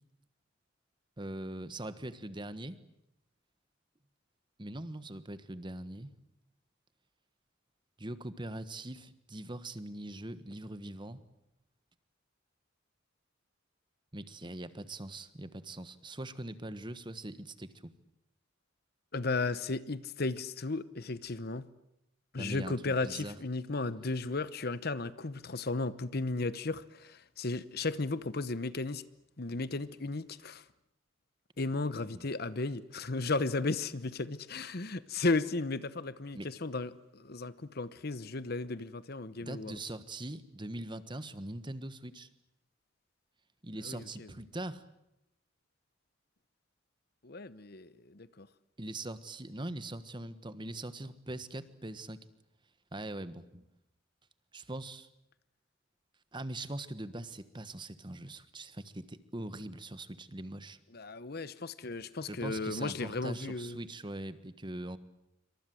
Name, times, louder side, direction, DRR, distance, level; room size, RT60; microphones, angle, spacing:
voice 1, 1.2-2.8 4.6-6.1 8.0-11.2 14.1-17.9 22.4-23.4 32.1-32.3 36.3-36.5 39.4-42.3 43.6-44.8 48.8-52.2 52.9-53.7 54.5-55.1 56.3-60.8 62.3-65.0, right 1 dB, 25° right, 1.3 m, -42 dB
voice 2, 19.1-21.7 22.3-29.0 29.4-30.6 31.6-39.7 43.8-44.3 47.2-48.5 60.9-63.8, left 3 dB, 50° left, 1.0 m, -35 dB
27.5 x 25.0 x 7.8 m
head